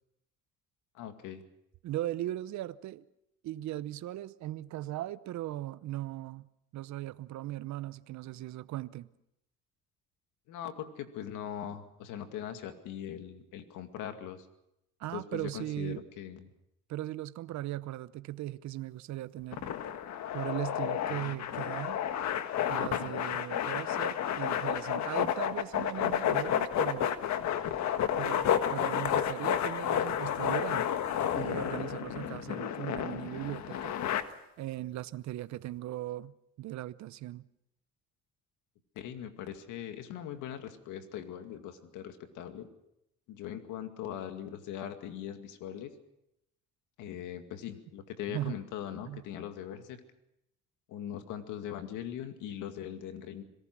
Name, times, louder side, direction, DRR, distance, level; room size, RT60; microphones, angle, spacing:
voice 1, 0.9-1.4 10.5-14.5 15.1-16.4 21.1-21.5 23.0-23.2 39.0-42.7 43.3-45.9 47.0-50.0 50.9-53.4, left 10 dB, 85° left, 2.3 m, -41 dB
voice 2, 1.8-3.0 3.4-6.5 6.7-9.1 15.0-16.0 16.9-19.6 20.3-22.0 22.7-27.1 28.2-30.9 31.3-34.0 34.6-37.4 48.3-48.6 49.0-49.2, right 15 dB, 70° right, 0.8 m, -38 dB
sound 1, 19.5-34.2, left 9 dB, 65° left, 1.5 m, -31 dB
26.5 x 18.0 x 6.1 m
cardioid pair, 90°, 30 cm